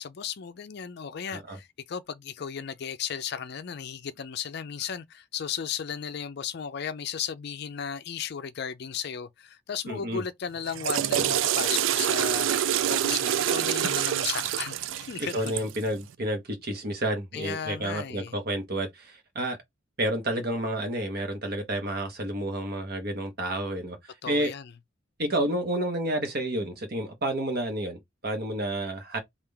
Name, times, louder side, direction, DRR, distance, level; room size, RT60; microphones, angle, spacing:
voice 1, 0.0-15.6 17.3-18.3 24.2-24.7, left 7 dB, 55° left, 0.4 m, -35 dB
voice 2, 9.9-10.2 15.3-19.6 20.0-24.0 24.3-24.5 25.2-29.2, right 1 dB, 50° right, 1.1 m, -30 dB
Water / Toilet flush, 10.6-15.8, right 10 dB, 70° right, 0.3 m, -26 dB
3.6 x 2.5 x 3.4 m
head